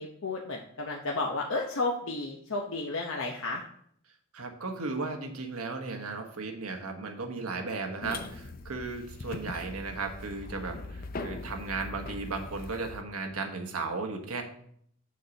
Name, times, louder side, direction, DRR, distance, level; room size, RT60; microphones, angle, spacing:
voice 1, 0.0-3.6, left 2 dB, 70° left, 0 dB, 0.8 m, -32 dB
voice 2, 4.3-14.4, right 3 dB, 90° right, 4 dB, 1.2 m, -35 dB
sound 1, 8.0-13.0, left 3 dB, 40° left, 0.5 m, -41 dB
6.9 x 6.5 x 3.9 m, 0.65 s
head